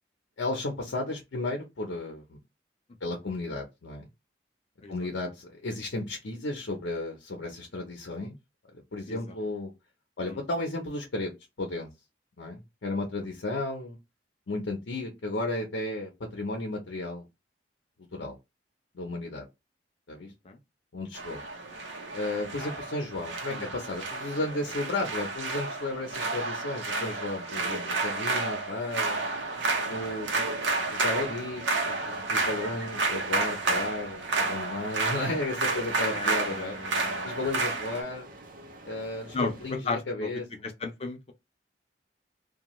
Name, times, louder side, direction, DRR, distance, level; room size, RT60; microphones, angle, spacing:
voice 1, 0.4-2.4 3.0-4.1 4.9-8.4 8.9-9.7 10.2-11.3 11.6-11.9 12.4-14.0 14.5-17.2 18.1-18.3 18.9-19.5 20.1-20.3 20.9-21.4 22.1-29.2 29.8-30.6 30.9-36.8 37.2-38.3 38.8-40.4, left 2 dB, 85° left, 0.6 m, -34 dB
sound 1, 21.1-38.0, right 3 dB, 85° right, 0.8 m, -31 dB
sound 2, 29.1-39.8, right 2 dB, 50° right, 0.6 m, -48 dB
voice 2, 36.0-37.4 39.3-41.3, left 3 dB, 35° left, 0.5 m, -35 dB
2.7 x 2.3 x 3.0 m
head